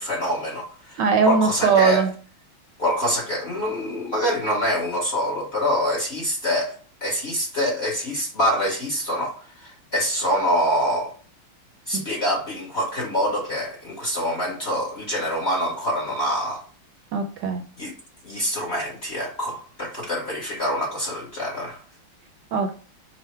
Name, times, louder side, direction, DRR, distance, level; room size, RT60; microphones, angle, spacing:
voice 1, 0.0-2.1 2.8-11.1 11.9-16.6 17.8-17.9 18.2-21.8, equal, 45° left, -3 dB, 0.9 m, -25 dB
voice 2, 1.0-2.1 11.9-12.0 17.1-17.6 22.5-22.7, right 5 dB, 75° right, 4 dB, 1.0 m, -20 dB
5.6 x 2.0 x 4.3 m, 0.40 s
omnidirectional pair, 2.2 m